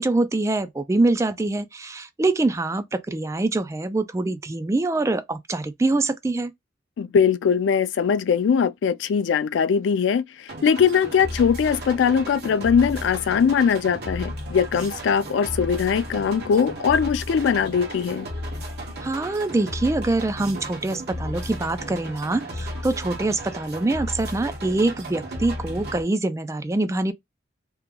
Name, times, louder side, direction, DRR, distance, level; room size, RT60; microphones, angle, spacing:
voice 1, 0.0-6.5 19.0-27.1, right 2 dB, 15° right, 0.3 m, -24 dB
voice 2, 7.0-18.3, left 6 dB, 90° left, 0.3 m, -21 dB
sound 1, 10.5-26.0, equal, 60° right, 1.2 m, -34 dB
2.9 x 2.2 x 3.7 m
head